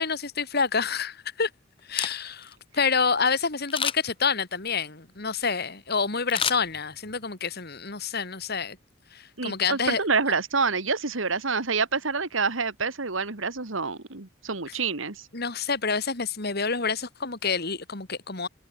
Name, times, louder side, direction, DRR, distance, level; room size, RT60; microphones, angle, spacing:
voice 1, 0.0-1.5 1.9-8.8 9.1-10.0 14.7-14.8 15.3-18.5, left 5 dB, 50° left, 2.6 m, -28 dB
Camera, 1.8-2.5 3.7-4.2 6.3-7.2 7.6-7.7, left 7 dB, 25° left, 2.1 m, -31 dB
voice 2, 9.4-15.2, right 4 dB, 70° right, 2.1 m, -27 dB
head